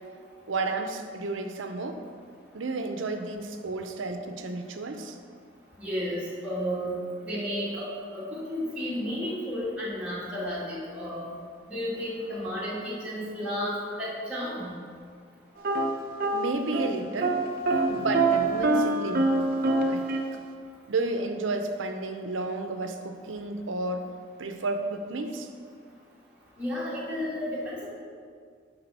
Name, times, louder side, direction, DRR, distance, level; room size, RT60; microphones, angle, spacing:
voice 1, 0.5-2.0 2.5-5.1 16.3-17.4 17.9-20.2 20.9-24.1 24.4-25.5, right 2 dB, 90° right, 6 dB, 0.7 m, -32 dB
voice 2, 5.8-7.9 8.1-11.3 11.7-14.7 26.6-27.8, equal, 5° right, -9 dB, 1.9 m, -32 dB
sound 1, 15.6-16.9 17.2-20.2, right 2 dB, 50° right, 0.7 m, -25 dB
10.0 x 3.7 x 5.5 m, 2.1 s
head